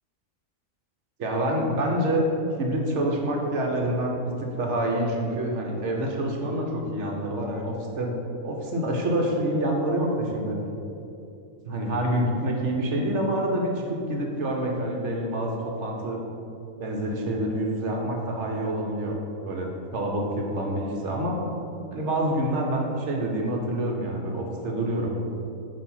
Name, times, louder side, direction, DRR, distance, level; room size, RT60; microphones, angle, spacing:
voice 1, 1.2-2.3 2.6-8.1 8.4-10.6 11.6-16.2 16.8-19.1 19.4-21.4 21.9-25.1, right 1 dB, 60° right, 0 dB, 1.0 m, -27 dB
7.1 x 2.8 x 5.5 m, 2.7 s
omnidirectional pair, 1.6 m